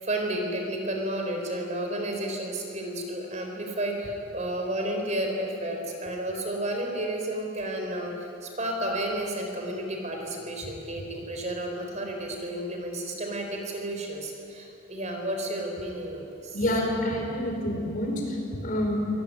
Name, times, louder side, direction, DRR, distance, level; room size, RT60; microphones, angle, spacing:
voice 1, 0.0-16.6, right 1 dB, 40° right, 2 dB, 4.5 m, -32 dB
voice 2, 16.5-19.0, left 1 dB, 45° left, 1 dB, 5.0 m, -28 dB
26.0 x 18.0 x 9.5 m, 2.8 s
head